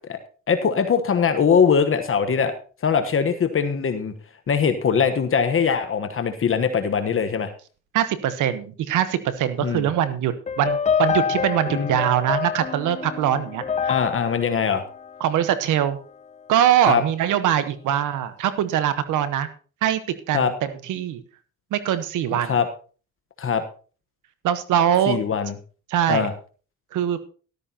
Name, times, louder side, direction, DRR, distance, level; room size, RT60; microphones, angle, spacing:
voice 1, 0.5-2.5 2.8-4.1 4.5-7.5 9.6-9.9 11.7-12.0 13.9-14.8 16.9-17.0 20.3-20.5 22.4-22.7 23.4-23.6 25.1-25.5 26.1-26.3, left 6 dB, 45° left, 8 dB, 1.2 m, -21 dB
voice 2, 7.9-13.9 15.2-16.0 16.5-19.5 19.8-20.0 20.3-21.2 21.7-22.5 24.4-25.2 25.9-26.3 26.9-27.3, right 10 dB, 85° right, 12 dB, 1.1 m, -22 dB
sound 1, 10.5-15.8, left 6 dB, 25° left, 0.4 m, -27 dB
13.5 x 12.5 x 2.9 m, 0.39 s
cardioid pair, 90°, 30 cm